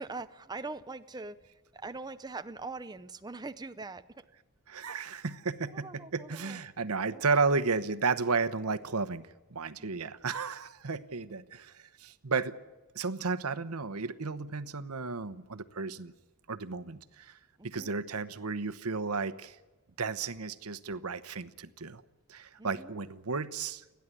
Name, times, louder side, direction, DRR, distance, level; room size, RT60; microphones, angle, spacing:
voice 1, 0.0-1.4 1.7-4.2 5.7-6.6 7.1-7.2 9.8-10.1 17.6-18.0 22.6-23.0, right 3 dB, 20° right, 10 dB, 0.6 m, -42 dB
voice 2, 4.7-12.5 12.9-16.1 16.5-17.3 17.6-19.6 20.0-22.0 22.3-23.8, right 4 dB, 90° right, 14 dB, 1.0 m, -33 dB
30.0 x 10.5 x 9.8 m, 1.2 s
head